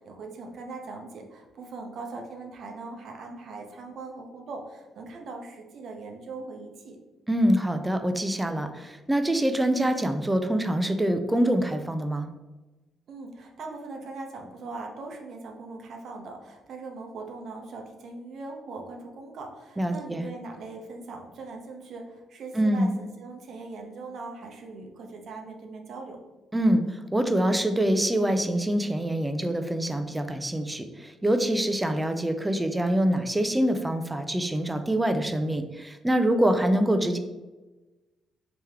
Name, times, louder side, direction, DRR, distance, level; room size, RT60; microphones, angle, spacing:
voice 1, 0.0-7.0 13.1-26.2, right 3 dB, 65° right, 2 dB, 0.7 m, -40 dB
voice 2, 7.3-12.3 19.8-20.3 22.5-22.9 26.5-37.2, right 1 dB, 10° right, 7 dB, 0.4 m, -25 dB
3.3 x 2.9 x 3.5 m, 1.1 s
cardioid pair, 90°, 0 cm